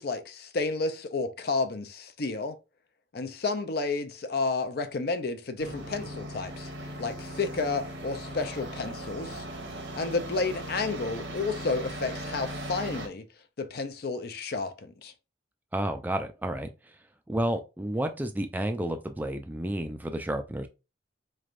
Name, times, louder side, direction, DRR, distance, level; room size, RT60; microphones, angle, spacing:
voice 1, 0.0-2.6 3.1-6.7 7.0-9.4 9.9-13.2 13.6-15.1, left 3 dB, 55° left, 0.5 m, -31 dB
sound 1, 5.6-13.1, right 1 dB, 80° right, 1.1 m, -38 dB
voice 2, 15.7-16.7 17.3-20.7, right 1 dB, 10° right, 0.3 m, -31 dB
4.3 x 3.2 x 2.4 m
head